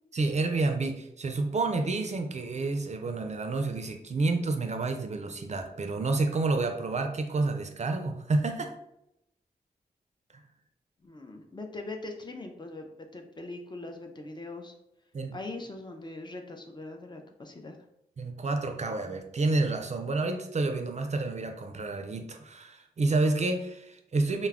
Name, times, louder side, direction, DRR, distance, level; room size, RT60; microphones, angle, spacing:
voice 1, 0.1-8.7 15.1-15.4 18.2-24.5, right 3 dB, 45° right, 5 dB, 0.4 m, -29 dB
voice 2, 11.0-14.7 15.3-17.8, left 2 dB, 30° left, 3 dB, 0.4 m, -41 dB
2.3 x 2.0 x 3.4 m, 0.81 s
cardioid pair, 50°, 16 cm